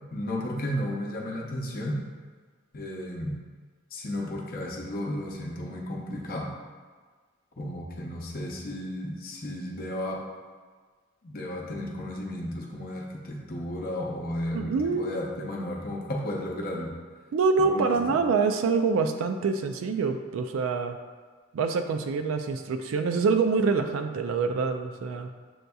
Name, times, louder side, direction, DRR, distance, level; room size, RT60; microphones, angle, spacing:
voice 1, 0.1-2.0 2.7-3.3 3.9-6.5 7.6-10.2 11.2-16.9 17.6-18.2, left 1 dB, 45° left, -2 dB, 0.7 m, -33 dB
voice 2, 14.5-15.1 17.3-21.0 21.5-25.3, right 4 dB, 75° right, 7 dB, 0.3 m, -26 dB
7.7 x 2.6 x 2.3 m, 1.5 s
head